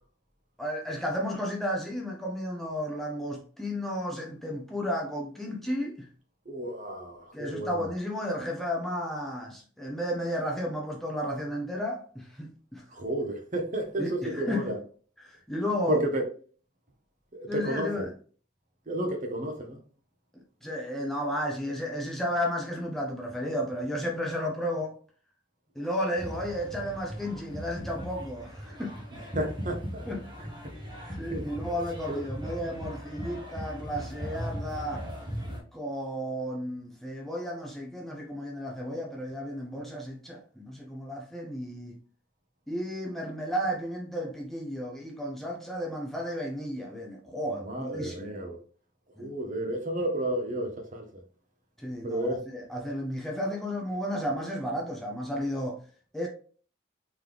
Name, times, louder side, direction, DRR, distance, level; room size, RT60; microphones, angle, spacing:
voice 1, 0.6-6.1 7.3-12.8 14.0-14.7 15.2-16.0 17.5-18.1 20.3-25.0 25.8-29.0 30.1-30.3 31.2-35.1 35.7-42.0 42.7-48.4 49.2-49.3 51.8-55.8 56.1-56.3, equal, ahead, 0.5 m, -33 dB
voice 2, 6.5-7.8 12.9-14.8 15.9-16.3 17.3-18.1 18.9-19.8 29.3-30.1 30.4-30.5 30.9-31.5 32.1-32.2 47.6-48.6 49.2-51.1 52.0-52.4, right 1 dB, 40° right, 0.8 m, -32 dB
sound 1, 26.2-35.6, equal, 20° right, 1.1 m, -38 dB
3.7 x 3.1 x 3.4 m
head